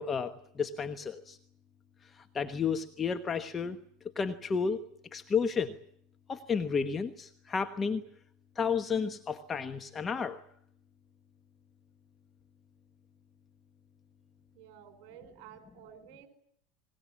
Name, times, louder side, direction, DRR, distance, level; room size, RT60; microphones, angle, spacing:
voice 1, 0.0-1.4 2.3-3.8 4.2-4.8 5.1-5.8 6.3-8.0 8.6-10.4, left 6 dB, 25° left, 9 dB, 1.2 m, -32 dB
voice 2, 14.5-16.3, right 9 dB, 60° right, 7 dB, 5.0 m, -52 dB
23.0 x 21.0 x 8.5 m, 0.68 s
supercardioid pair, 115°, 0 cm